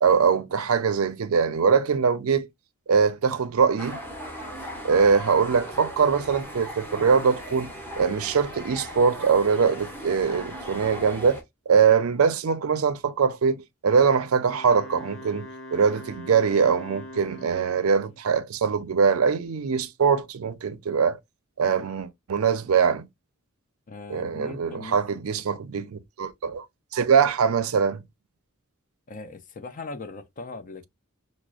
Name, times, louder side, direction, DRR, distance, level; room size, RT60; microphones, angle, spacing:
voice 1, 0.0-2.5 2.9-4.0 4.8-21.2 21.6-23.1 24.1-26.7 26.9-28.0, right 6 dB, 80° right, 0.5 m, -22 dB
sound 1, 3.8-11.4, equal, 10° left, 0.8 m, -38 dB
Wind instrument woodwind instrument, 14.4-18.2, left 1 dB, 70° left, 0.8 m, -42 dB
voice 2, 23.9-25.2 29.1-30.9, left 3 dB, 40° left, 0.5 m, -39 dB
6.0 x 2.0 x 2.3 m
head